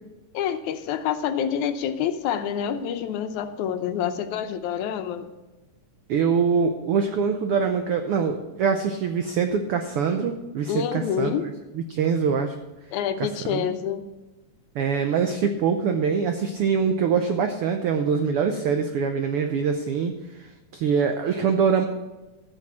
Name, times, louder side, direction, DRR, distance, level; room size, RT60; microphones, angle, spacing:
voice 1, 0.3-5.3 10.7-11.5 12.9-14.1, left 8 dB, 80° left, 9 dB, 2.1 m, -27 dB
voice 2, 6.1-12.5 13.4-13.7 14.7-21.8, right 6 dB, 90° right, 6 dB, 1.2 m, -24 dB
14.0 x 6.5 x 5.9 m, 1.1 s
omnidirectional pair, 3.5 m